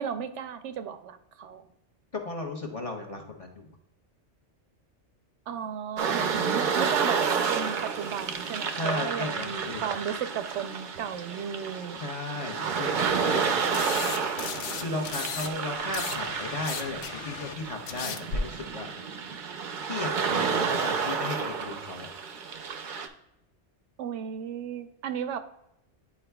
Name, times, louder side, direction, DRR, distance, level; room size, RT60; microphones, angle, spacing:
voice 1, 0.0-1.7 5.5-12.0 24.0-25.4, right 8 dB, 85° right, 10 dB, 0.9 m, -34 dB
voice 2, 2.1-3.7 8.7-9.8 12.0-13.6 14.7-18.9 19.8-22.1, left 2 dB, 35° left, 1 dB, 0.8 m, -35 dB
sound 1, 6.0-23.1, right 6 dB, 55° right, 0.6 m, -30 dB
sound 2, 13.7-15.5 15.8-18.4, left 7 dB, 85° left, 0.9 m, -36 dB
9.6 x 4.6 x 2.2 m, 0.85 s
omnidirectional pair, 1.2 m